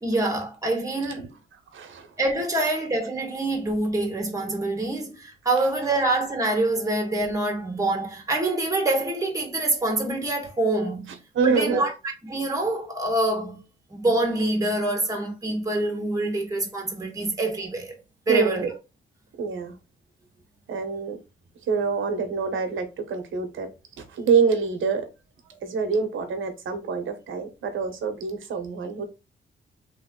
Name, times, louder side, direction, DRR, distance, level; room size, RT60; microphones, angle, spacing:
voice 1, 0.0-1.3 2.2-11.2 11.4-11.9 12.2-13.6 13.9-17.9 18.3-18.7, right 2 dB, 15° right, 1.5 m, -25 dB
voice 2, 1.7-2.1 11.3-11.8 18.3-18.7 19.4-19.7 20.7-21.2 21.7-23.7 24.0-25.1 25.6-29.0, right 5 dB, 75° right, 1.1 m, -25 dB
3.4 x 3.1 x 3.7 m
cardioid pair, 100°, 21 cm